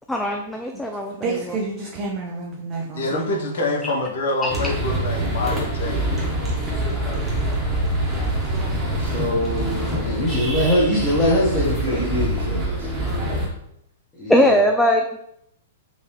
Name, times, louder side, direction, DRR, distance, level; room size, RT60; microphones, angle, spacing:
voice 1, 0.1-1.1 4.4-4.5 14.3-15.2, equal, 5° left, 2 dB, 0.3 m, -19 dB
voice 2, 1.1-4.0, right 3 dB, 35° right, -3 dB, 0.6 m, -30 dB
voice 3, 2.9-6.0, left 2 dB, 65° left, 0 dB, 0.9 m, -25 dB
sound 1, 4.5-13.5, right 1 dB, 15° right, 1.1 m, -25 dB
voice 4, 9.0-10.3 11.8-13.4, equal, 80° right, -4 dB, 0.9 m, -28 dB
voice 5, 10.0-12.0 14.2-14.5, equal, 25° left, -8 dB, 1.2 m, -21 dB
3.9 x 2.6 x 3.1 m, 0.76 s
hypercardioid pair, 110°, 0 cm